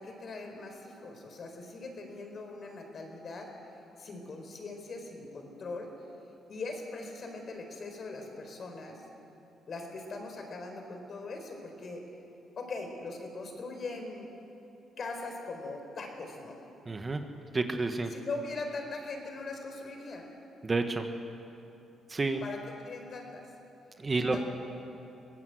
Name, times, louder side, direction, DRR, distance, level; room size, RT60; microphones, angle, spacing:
voice 1, 0.0-5.9 6.5-9.0 9.7-12.0 12.6-14.3 15.0-16.6 18.1-20.2 22.4-23.5 23.9-24.5, left 3 dB, 50° left, 3 dB, 4.4 m, -41 dB
voice 2, 16.8-17.2 17.5-18.1 20.6-21.0 22.1-22.4 24.0-24.4, right 3 dB, 30° right, 6 dB, 1.5 m, -29 dB
23.0 x 17.5 x 8.0 m, 2.9 s
cardioid pair, 90°, 0 cm